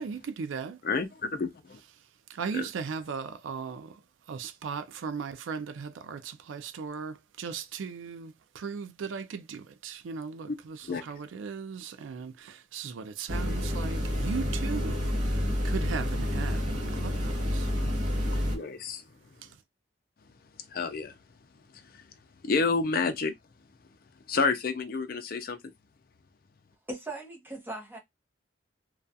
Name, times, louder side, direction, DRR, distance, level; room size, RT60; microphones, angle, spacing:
voice 1, 0.0-0.8 2.0-4.0 4.3-17.7 19.4-19.6, right 6 dB, 85° right, 0.4 m, -38 dB
voice 2, 0.8-1.8 2.5-2.6 10.9-11.0 18.5-19.0 20.7-21.1 22.4-23.3 24.3-25.6, left 4 dB, 50° left, 0.4 m, -29 dB
sound 1, 13.3-18.6, left 1 dB, 40° right, 0.9 m, -29 dB
voice 3, 26.9-28.0, right 2 dB, 10° right, 0.7 m, -38 dB
2.3 x 2.3 x 2.5 m
head